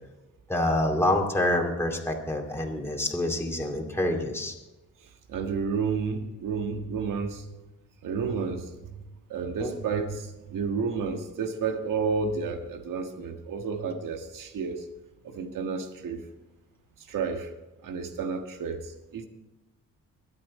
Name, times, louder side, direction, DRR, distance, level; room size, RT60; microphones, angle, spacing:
voice 1, 0.5-4.5 9.6-9.7, left 1 dB, 10° left, 0 dB, 2.4 m, -27 dB
voice 2, 5.0-7.5 8.0-9.0 9.3-14.9 15.2-16.3 17.0-17.5 17.8-19.3, right 5 dB, 85° right, 5 dB, 1.7 m, -31 dB
23.0 x 8.7 x 4.3 m, 1.0 s
cardioid pair, 95°, 31 cm